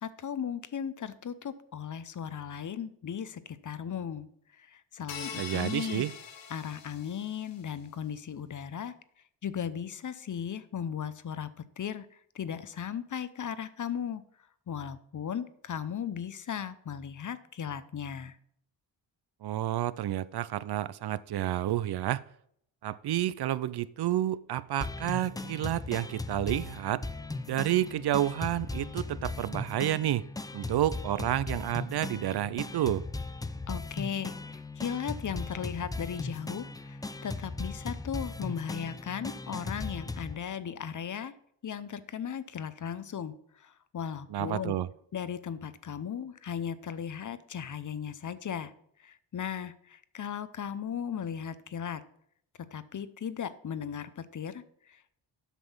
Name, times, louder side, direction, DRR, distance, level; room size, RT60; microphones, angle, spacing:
voice 1, 0.0-4.3 4.5-6.1 6.5-8.9 9.4-14.2 14.7-18.4 33.7-41.3 41.6-44.8 45.1-48.7 49.0-52.0 52.7-55.1, left 8 dB, 40° left, 0.7 m, -37 dB
sound 1, 5.1-7.6, left 7 dB, 75° left, 1.3 m, -43 dB
voice 2, 5.4-6.1 19.4-22.2 22.8-27.1 27.5-30.3 30.5-33.1 44.3-44.9, right 12 dB, 60° right, 0.5 m, -30 dB
sound 2, 24.8-40.4, left 3 dB, 10° left, 0.3 m, -38 dB
8.2 x 6.1 x 5.4 m
cardioid pair, 75°, 46 cm